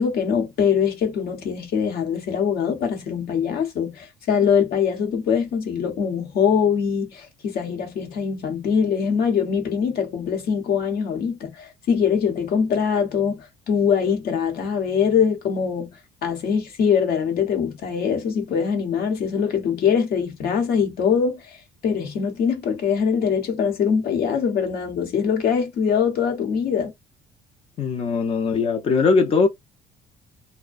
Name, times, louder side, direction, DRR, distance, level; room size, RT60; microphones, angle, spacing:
voice 1, 0.0-21.6 21.8-26.9, left 7 dB, 65° left, 0.9 m, -23 dB
voice 2, 27.8-29.5, left 4 dB, 35° left, 0.5 m, -20 dB
2.5 x 2.1 x 2.3 m
cardioid pair, 110°, 17 cm